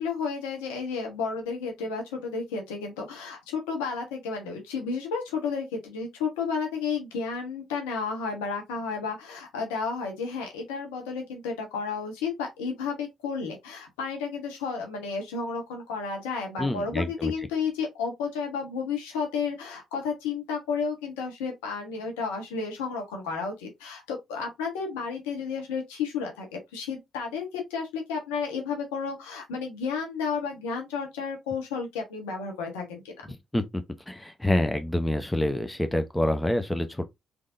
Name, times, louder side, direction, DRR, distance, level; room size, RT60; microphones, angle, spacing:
voice 1, 0.0-33.1, left 5 dB, 85° left, 1.2 m, -32 dB
voice 2, 16.6-17.3 33.5-33.6 34.1-37.0, left 1 dB, 15° left, 0.7 m, -26 dB
3.6 x 3.3 x 2.5 m
hypercardioid pair, 45°, 0 cm